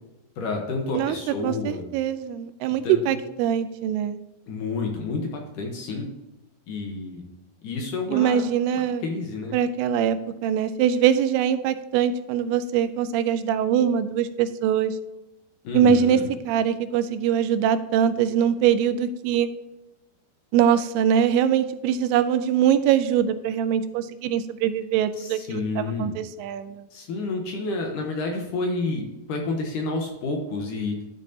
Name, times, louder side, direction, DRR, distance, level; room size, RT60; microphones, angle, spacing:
voice 1, 0.4-1.8 2.8-3.2 4.5-6.1 6.7-7.2 7.6-8.4 9.0-9.6 15.6-16.2 25.2-26.1 26.9-31.0, left 3 dB, 65° left, 2 dB, 2.3 m, -29 dB
voice 2, 1.4-4.2 8.1-9.0 9.5-15.0 15.7-19.5 20.5-26.9, right 9 dB, 85° right, 12 dB, 2.6 m, -23 dB
12.0 x 7.2 x 2.8 m, 0.99 s
omnidirectional pair, 4.5 m